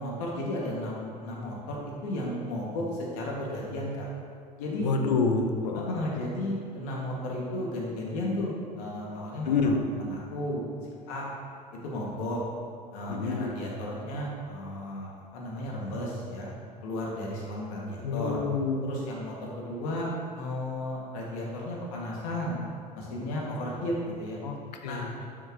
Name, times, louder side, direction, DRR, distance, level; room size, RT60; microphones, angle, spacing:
voice 1, 0.0-4.1 4.6-4.9 5.7-9.6 9.9-10.6 11.1-11.3 11.8-12.4 12.9-16.5 16.8-18.4 18.8-22.6 22.9-24.4 24.8-25.0, left 1 dB, 65° left, -3 dB, 2.3 m, -34 dB
voice 2, 4.8-5.9 9.5-9.8 13.1-13.5 18.0-19.0 24.4-24.6 24.8-25.1, left 4 dB, 80° left, 4 dB, 0.9 m, -27 dB
11.5 x 6.6 x 3.2 m, 2.3 s
hypercardioid pair, 70°, 21 cm